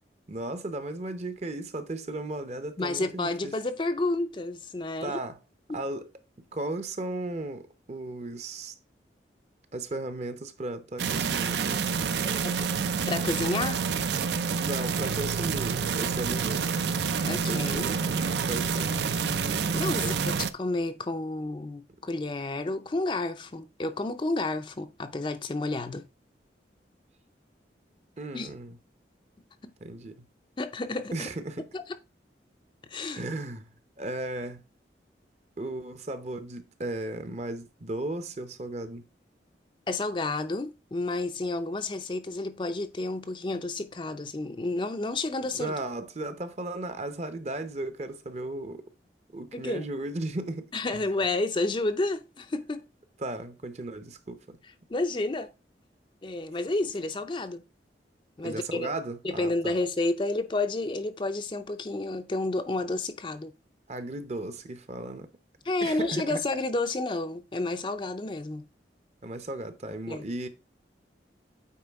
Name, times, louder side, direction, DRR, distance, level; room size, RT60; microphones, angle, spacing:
voice 1, 0.3-3.5 5.0-5.4 5.7-6.1 6.5-8.7 9.7-11.9 12.2-12.8 14.6-16.8 17.2-19.0 20.0-20.2 28.2-28.8 29.8-30.3 31.1-31.7 33.1-33.7 34.0-34.6 35.6-39.0 45.5-48.9 49.3-51.0 53.2-54.6 58.4-59.8 63.9-65.3 65.8-66.4 69.2-70.5, right 2 dB, 40° right, 0.7 m, -36 dB
voice 2, 2.8-5.2 5.7-5.8 12.4-12.5 13.1-13.8 17.3-18.0 18.8-20.2 20.5-26.1 28.3-28.5 29.6-29.7 30.6-31.3 31.7-31.8 32.9-33.2 39.9-45.7 49.5-49.8 50.7-52.8 54.9-55.5 56.2-57.6 58.4-58.9 59.2-63.5 65.7-68.7 70.1-70.2, left 2 dB, 25° left, 0.4 m, -30 dB
sound 1, 11.0-20.5, right 6 dB, 75° right, 0.5 m, -28 dB
8.6 x 4.5 x 3.5 m
head